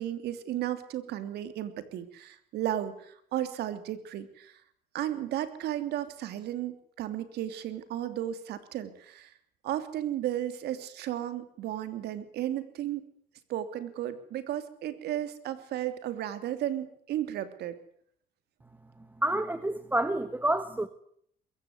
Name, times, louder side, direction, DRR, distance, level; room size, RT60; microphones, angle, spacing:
voice 1, 0.0-4.6 4.9-9.3 9.6-13.0 13.5-17.8, right 12 dB, 75° right, 11 dB, 3.1 m, -34 dB
voice 2, 19.2-20.9, right 1 dB, 10° right, 11 dB, 1.4 m, -28 dB
22.5 x 15.5 x 9.6 m, 0.66 s
cardioid pair, 110°, 17 cm